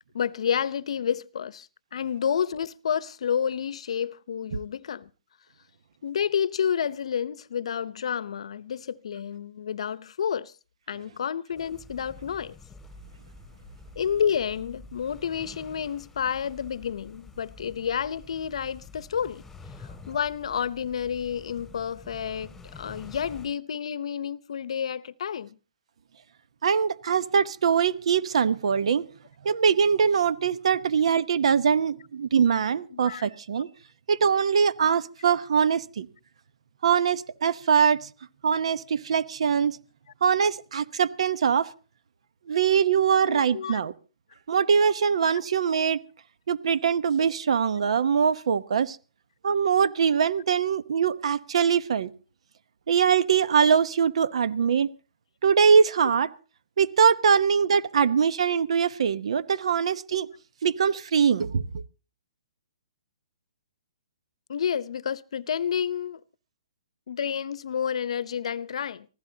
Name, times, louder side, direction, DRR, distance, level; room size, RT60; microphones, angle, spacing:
voice 1, 0.1-5.1 6.0-10.5 10.9-12.6 14.0-19.4 19.8-25.6 32.9-33.3 43.3-43.8 64.5-66.2 67.1-69.1, left 8 dB, 65° left, 0.8 m, -30 dB
sound 1, 11.6-23.5, left 3 dB, 5° left, 2.4 m, -48 dB
voice 2, 26.6-29.1 29.4-33.7 34.1-36.1 36.8-38.1 38.4-39.8 40.2-41.7 42.5-43.9 44.5-46.0 46.5-49.0 49.4-52.1 52.9-54.9 55.4-56.3 56.8-60.3 60.6-61.6, right 7 dB, 65° right, 1.0 m, -22 dB
24.5 x 15.5 x 2.8 m
hypercardioid pair, 145°, 3 cm